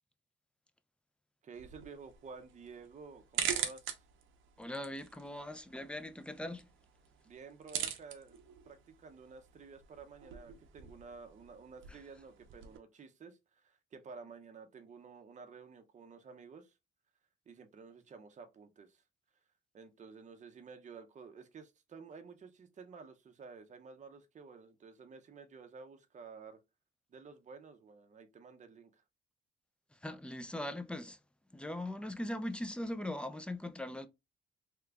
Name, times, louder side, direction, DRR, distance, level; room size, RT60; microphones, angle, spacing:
voice 1, 1.4-4.0 7.2-8.4 8.7-16.7 17.5-19.0 19.7-26.6 27.1-29.0, right 5 dB, 40° right, 0.6 m, -52 dB
sound 1, 1.5-12.8, right 9 dB, 80° right, 0.6 m, -43 dB
voice 2, 4.6-6.6 30.0-31.2 31.5-34.1, left 1 dB, 5° left, 0.4 m, -40 dB
2.9 x 2.3 x 3.3 m
cardioid pair, 90°, 20 cm